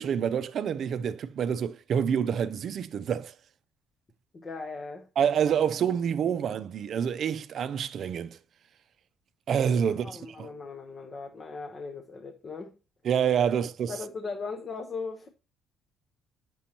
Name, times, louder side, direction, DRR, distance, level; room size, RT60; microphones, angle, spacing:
voice 1, 0.0-3.3 5.2-8.4 9.5-10.5 13.0-13.9, right 8 dB, 50° right, 0.5 m, -27 dB
voice 2, 4.3-5.1 9.8-12.7 13.9-15.3, left 4 dB, 30° left, 0.8 m, -38 dB
8.4 x 6.1 x 2.9 m
cardioid pair, 130°, 0 cm